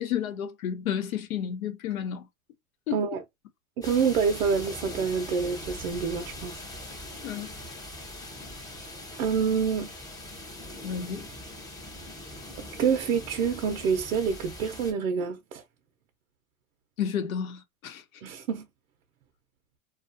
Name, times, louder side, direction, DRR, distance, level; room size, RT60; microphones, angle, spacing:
voice 1, 0.0-2.3 2.9-3.2 7.2-7.8 10.8-11.3 17.0-18.2, left 9 dB, 85° left, 0.8 m, -32 dB
sound 1, 3.8-14.9, left 1 dB, 10° left, 0.5 m, -41 dB
voice 2, 3.8-6.6 9.2-9.9 12.8-15.6 18.2-18.6, right 6 dB, 80° right, 0.7 m, -27 dB
2.4 x 2.3 x 2.5 m
hypercardioid pair, 120°, 41 cm